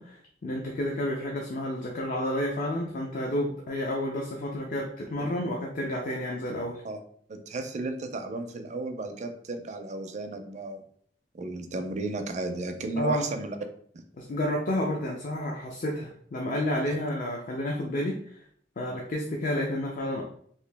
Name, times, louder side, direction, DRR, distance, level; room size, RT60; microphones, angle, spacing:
voice 1, 0.0-6.8 13.0-13.3 14.2-18.4 18.8-20.2, left 1 dB, 50° left, 0 dB, 0.5 m, -30 dB
voice 2, 7.3-10.8 11.3-13.6 16.9-17.0, right 2 dB, 40° right, 6 dB, 0.4 m, -34 dB
2.9 x 2.7 x 3.3 m, 0.62 s
head